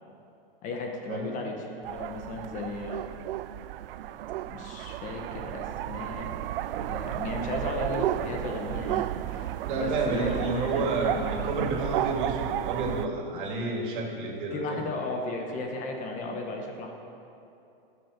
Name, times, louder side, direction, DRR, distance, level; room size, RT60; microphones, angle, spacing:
voice 1, 0.6-3.0 4.4-6.3 6.8-11.5 13.3-13.4 14.5-16.9, left 3 dB, 25° left, 2 dB, 1.1 m, -35 dB
sound 1, 1.8-13.1, right 13 dB, 70° right, 0.4 m, -33 dB
voice 2, 9.6-14.8, right 3 dB, 55° right, 0 dB, 2.5 m, -30 dB
15.0 x 6.6 x 6.6 m, 2.7 s
supercardioid pair, 155°, 29 cm